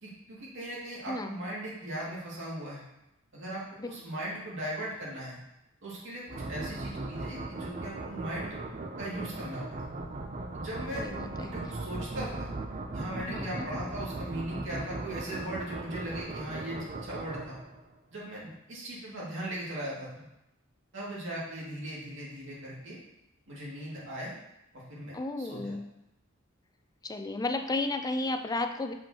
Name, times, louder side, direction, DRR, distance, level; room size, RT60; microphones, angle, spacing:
voice 1, 0.0-2.8 3.3-5.4 5.8-8.6 9.0-9.9 10.5-11.1 11.4-12.5 12.9-17.6 18.1-20.3 20.9-23.0 23.5-24.4 24.7-25.7, right 1 dB, 60° right, -6 dB, 2.3 m, -39 dB
voice 2, 1.1-1.4 3.8-3.9 10.9-11.5 13.3-13.7 25.1-25.8 27.0-28.9, left 2 dB, 20° left, 7 dB, 0.4 m, -33 dB
sound 1, 6.3-18.0, right 2 dB, 35° right, 0.6 m, -38 dB
7.1 x 5.3 x 2.9 m, 0.89 s
head